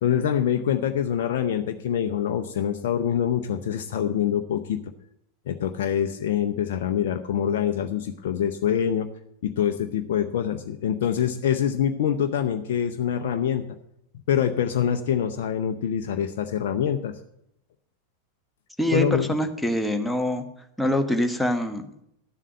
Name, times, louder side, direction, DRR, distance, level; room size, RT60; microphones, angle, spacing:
voice 1, 0.0-4.8 5.5-9.1 9.4-13.6 14.3-17.1 18.9-19.3, left 9 dB, 55° left, 6 dB, 0.6 m, -25 dB
voice 2, 18.8-20.4 20.8-22.0, equal, ahead, 6 dB, 1.1 m, -25 dB
11.5 x 7.4 x 6.5 m, 0.76 s
figure-of-eight pair, 90°, 0 cm